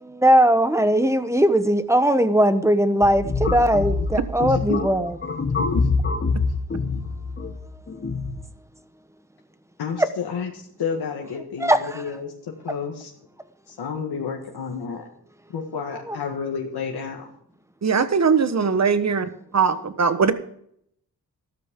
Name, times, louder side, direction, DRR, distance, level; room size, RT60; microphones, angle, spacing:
voice 1, 0.0-5.1 11.6-12.0 16.1-16.2, equal, 5° right, 1.2 m, -19 dB
sound 1, 3.0-8.4, left 3 dB, 30° left, 1.6 m, -25 dB
voice 2, 4.5-4.8 5.6-5.9 9.8-10.5 10.8-13.1 13.7-15.1 15.5-17.4, left 6 dB, 90° left, 1.7 m, -30 dB
voice 3, 17.8-20.3, right 5 dB, 45° right, 1.2 m, -20 dB
14.0 x 13.0 x 3.8 m
cardioid pair, 85°, 38 cm